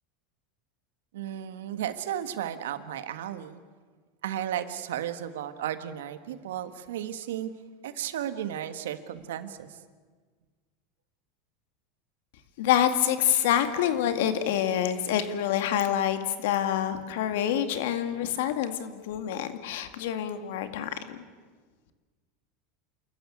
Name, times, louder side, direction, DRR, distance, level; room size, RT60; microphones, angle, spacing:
voice 1, 1.1-3.6 4.2-7.5 7.8-9.7, right 10 dB, 90° right, 10 dB, 1.5 m, -34 dB
voice 2, 12.6-21.2, left 10 dB, 75° left, 9 dB, 2.1 m, -27 dB
28.5 x 14.0 x 9.6 m, 1.5 s
supercardioid pair, 130°, 0 cm